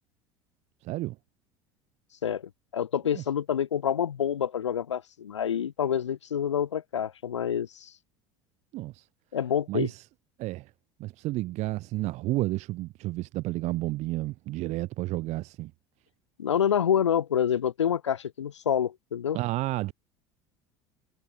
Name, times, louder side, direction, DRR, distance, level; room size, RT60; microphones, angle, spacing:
voice 1, 0.8-1.2 3.1-3.2 8.7-9.0 9.7-10.0 10.4-10.7 11.0-15.7 19.3-19.9, right 18 dB, 50° right, 2.1 m, -31 dB
voice 2, 2.2-7.9 9.3-9.9 16.4-19.4, left 9 dB, 75° left, 2.5 m, -27 dB
figure-of-eight pair, 70°, 15 cm